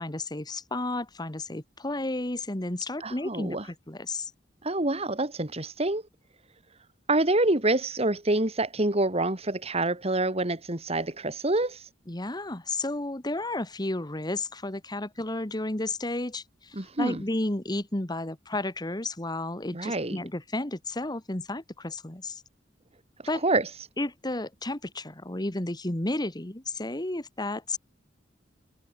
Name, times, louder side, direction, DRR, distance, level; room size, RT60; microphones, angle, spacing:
voice 1, 0.0-4.3 12.1-22.4 23.3-23.4 24.0-27.8, left 2 dB, 20° left, 1.6 m, -32 dB
voice 2, 3.0-3.7 4.6-6.0 7.1-11.9 16.7-17.2 19.7-20.2 23.4-23.7, right 2 dB, 35° right, 3.0 m, -26 dB
head